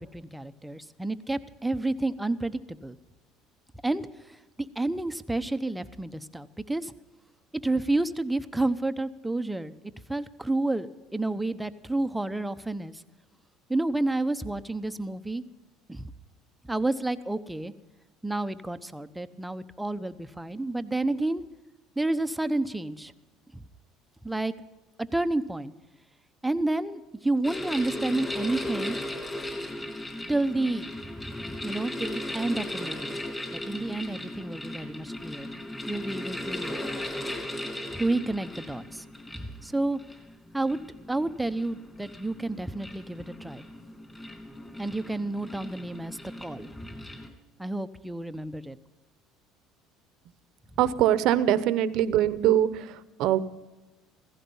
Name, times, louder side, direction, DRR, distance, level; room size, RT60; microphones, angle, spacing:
voice 1, 0.0-3.0 3.8-4.1 4.6-6.9 7.6-9.7 10.1-13.0 13.7-15.4 15.9-16.1 16.7-17.7 18.2-21.4 22.0-23.1 23.5-23.6 24.2-24.5 25.1-25.7 26.4-29.0 30.3-30.9 31.2-33.2 33.5-35.5 35.9-36.8 37.9-39.0 39.3-40.0 40.5-40.8 41.1-43.6 44.8-47.1 47.6-48.8, right 2 dB, 5° right, 11 dB, 0.8 m, -30 dB
sound 1, 27.4-47.3, left 1 dB, 15° left, 3.1 m, -37 dB
voice 2, 50.8-53.4, right 11 dB, 65° right, 14 dB, 0.9 m, -23 dB
16.0 x 15.5 x 5.5 m, 1.1 s
supercardioid pair, 105°, 0 cm